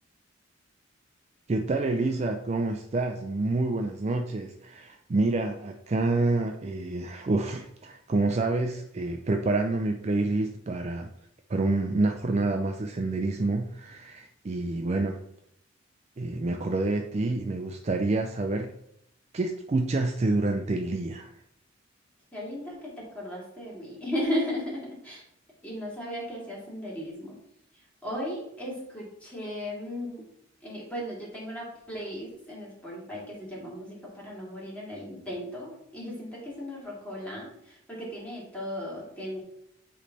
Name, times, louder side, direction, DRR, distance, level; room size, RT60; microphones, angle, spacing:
voice 1, 1.5-11.1 11.5-15.2 16.2-18.7 19.3-21.3, right 2 dB, 35° right, 4 dB, 0.4 m, -28 dB
voice 2, 22.3-25.2 25.6-27.4 28.0-30.2 30.6-39.4, equal, 5° left, -5 dB, 2.2 m, -36 dB
8.4 x 3.2 x 4.0 m, 0.73 s
head